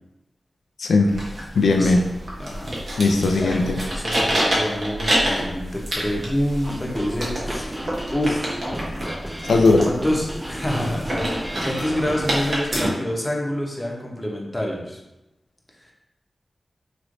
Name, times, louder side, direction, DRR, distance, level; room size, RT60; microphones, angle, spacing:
voice 1, 0.8-1.1 1.6-2.0 3.0-3.8 9.5-9.8, left 3 dB, 85° left, 3 dB, 0.3 m, -17 dB
sound 1, 1.1-12.9, equal, 65° right, 1.0 m, -28 dB
voice 2, 1.7-2.0 2.4-2.8 3.4-7.7 8.1-8.5 9.8-15.0 15.8-15.9, left 1 dB, 20° left, -1 dB, 0.8 m, -27 dB
sound 2, 6.6-12.2, equal, 20° right, 0.5 m, -33 dB
3.1 x 3.0 x 2.5 m, 0.96 s
cardioid pair, 40°, 0 cm